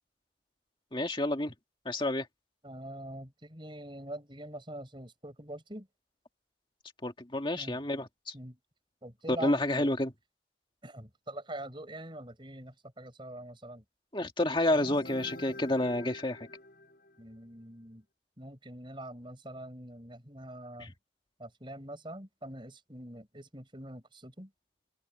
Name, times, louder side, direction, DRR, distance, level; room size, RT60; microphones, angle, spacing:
voice 1, 0.9-1.5 1.9-2.3 7.0-8.3 9.4-10.1 14.1-16.5 20.8-20.9, left 1 dB, 25° left, 1.9 m, -29 dB
voice 2, 2.6-5.9 7.5-7.8 8.3-8.6 9.0-9.9 10.8-13.8 17.2-18.0 18.4-20.9 21.4-24.5, right 1 dB, 25° right, 6.2 m, -44 dB
sound 1, 14.7-17.3, left 1 dB, 50° left, 5.9 m, -45 dB
open air
head